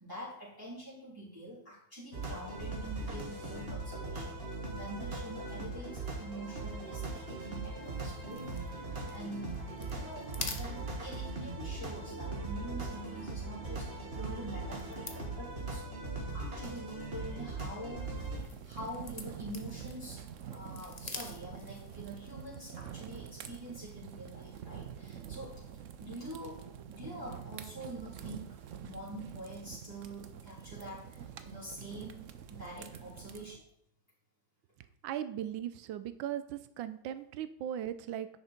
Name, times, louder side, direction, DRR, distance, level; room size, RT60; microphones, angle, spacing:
voice 1, 0.0-15.8 16.3-18.1 18.6-20.2 20.5-25.5 26.0-26.6 26.9-28.4 28.8-33.6, right 1 dB, 10° right, -9 dB, 3.2 m, -46 dB
sound 1, 2.1-18.4, right 3 dB, 30° right, 2.0 m, -40 dB
sound 2, 7.8-22.2, left 3 dB, 30° left, 0.8 m, -50 dB
sound 3, 18.3-33.6, right 8 dB, 60° right, 0.8 m, -47 dB
voice 2, 35.0-38.3, right 10 dB, 90° right, 12 dB, 1.4 m, -38 dB
10.5 x 6.6 x 4.4 m, 0.70 s
omnidirectional pair, 2.0 m